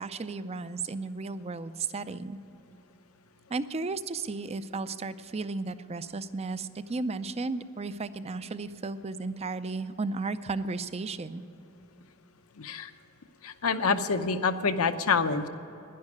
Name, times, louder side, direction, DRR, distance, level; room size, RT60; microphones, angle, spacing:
voice 1, 0.0-2.4 3.5-11.4, right 3 dB, 30° right, 13 dB, 0.5 m, -34 dB
voice 2, 12.6-12.9 13.4-15.5, left 5 dB, 75° left, 9 dB, 0.8 m, -27 dB
11.0 x 10.5 x 9.6 m, 2.9 s
head